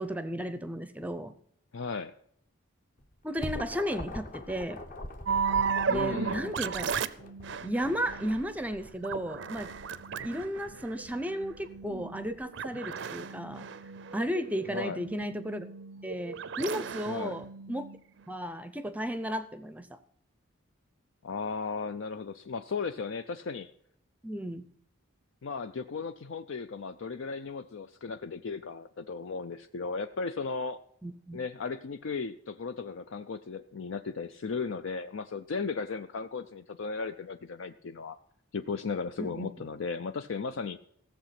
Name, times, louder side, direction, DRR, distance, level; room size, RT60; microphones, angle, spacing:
voice 1, 0.0-1.3 3.2-4.8 5.9-6.9 7.6-9.7 10.2-13.7 14.1-15.7 16.0-17.9 18.3-20.0 24.2-24.7 31.0-31.4 39.2-39.5, equal, 5° right, 12 dB, 0.6 m, -34 dB
voice 2, 1.7-2.1 5.9-6.5 14.7-15.0 17.1-17.4 21.2-23.7 25.4-30.8 31.3-38.2 38.5-40.8, left 4 dB, 60° left, 9 dB, 0.4 m, -36 dB
sound 1, 3.0-12.5, left 1 dB, 35° left, 1.0 m, -44 dB
sound 2, 5.3-18.3, right 6 dB, 55° right, 0.5 m, -35 dB
16.0 x 7.2 x 5.8 m, 0.67 s
head